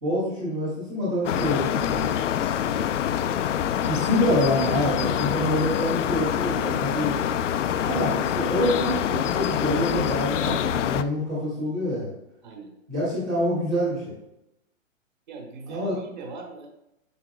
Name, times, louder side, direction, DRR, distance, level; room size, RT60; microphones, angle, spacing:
voice 1, 0.0-2.2 3.8-7.3 7.8-12.1 12.9-14.1 15.7-15.9, left 1 dB, 5° right, -7 dB, 0.5 m, -26 dB
sound 1, 1.2-11.0, left 9 dB, 65° left, 0.5 m, -25 dB
voice 2, 2.6-2.9 12.4-12.7 15.3-16.7, right 3 dB, 35° right, 3 dB, 1.2 m, -40 dB
8.4 x 7.1 x 2.3 m, 0.86 s
hypercardioid pair, 170°, 40 cm